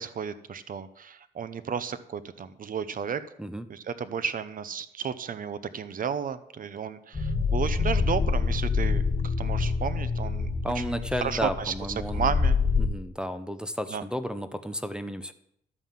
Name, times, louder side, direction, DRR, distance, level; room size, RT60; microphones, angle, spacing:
voice 1, 0.0-3.2 3.7-10.5 10.7-11.7 12.1-12.6 13.9-14.0, right 7 dB, 45° right, 13 dB, 0.9 m, -33 dB
sound 1, 7.1-12.9, left 4 dB, 25° left, 2.1 m, -26 dB
voice 2, 10.6-12.3 12.8-15.3, equal, 5° right, 8 dB, 0.7 m, -33 dB
12.0 x 5.6 x 7.5 m, 0.73 s
cardioid pair, 90°, 20 cm